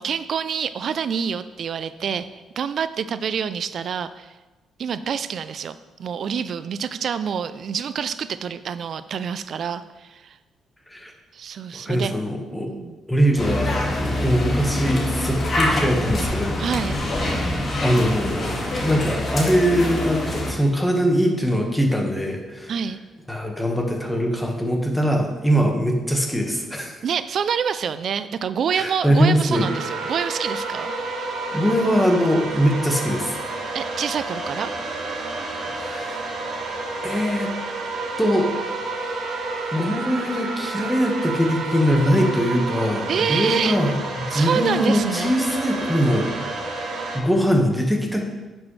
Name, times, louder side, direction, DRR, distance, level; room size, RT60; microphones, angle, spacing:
voice 1, 0.0-4.4 4.8-10.4 11.3-12.1 12.7-13.0 16.6-17.0 22.7-23.0 27.0-30.9 33.7-34.7 43.1-44.0 44.3-45.3, right 7 dB, 60° right, 13 dB, 0.3 m, -27 dB
voice 2, 11.8-12.7 13.1-16.6 17.8-18.5 18.8-22.7 23.3-27.0 28.7-29.7 31.5-33.3 35.8-36.3 37.0-37.5 38.2-38.5 39.7-43.9 44.3-46.3 47.1-48.3, equal, 5° left, 1 dB, 1.5 m, -22 dB
sound 1, 13.4-20.5, left 1 dB, 45° left, 2.0 m, -25 dB
sound 2, 29.5-47.2, right 3 dB, 75° right, 2.1 m, -30 dB
10.5 x 6.2 x 3.3 m, 1.2 s
cardioid pair, 90°, 0 cm